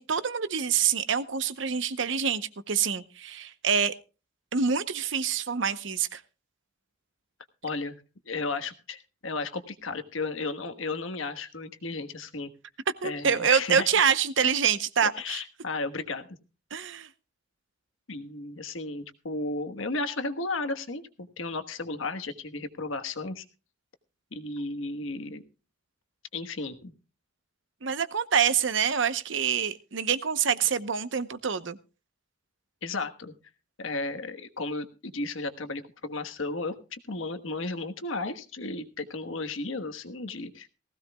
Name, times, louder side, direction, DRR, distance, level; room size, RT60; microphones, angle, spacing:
voice 1, 0.0-3.9 4.5-6.2 13.0-15.4 16.7-17.1 27.8-31.8, right 7 dB, 65° right, 14 dB, 0.8 m, -26 dB
voice 2, 7.6-8.0 8.2-12.5 13.0-13.9 15.2-16.3 18.1-21.0 21.4-23.4 24.3-25.4 26.3-26.9 32.8-33.3 33.8-40.7, left 3 dB, 80° left, 9 dB, 1.3 m, -34 dB
18.5 x 16.0 x 2.3 m, 0.32 s
head